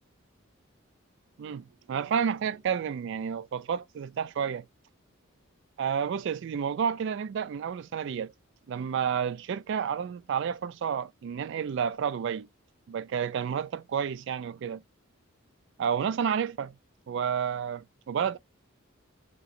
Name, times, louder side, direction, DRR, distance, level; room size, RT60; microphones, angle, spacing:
voice 1, 1.4-4.6 5.8-8.3 8.7-12.5 12.9-14.8 15.8-16.7 17.1-18.4, right 7 dB, 60° right, 0.3 m, -30 dB
3.0 x 2.6 x 2.4 m
head